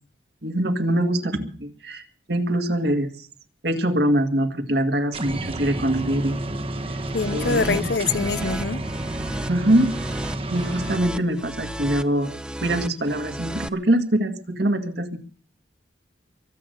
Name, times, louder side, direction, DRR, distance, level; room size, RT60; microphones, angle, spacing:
voice 1, 0.4-3.3 3.6-6.4 7.3-7.8 9.5-9.9 10.5-12.4 12.6-15.2, right 1 dB, 65° right, 2.0 m, -23 dB
sound 1, 5.1-11.0, right 1 dB, 30° right, 1.1 m, -30 dB
voice 2, 7.1-8.8, left 4 dB, 70° left, 0.7 m, -24 dB
sound 2, 7.1-13.7, right 1 dB, 5° right, 0.7 m, -34 dB
23.5 x 8.3 x 6.5 m
head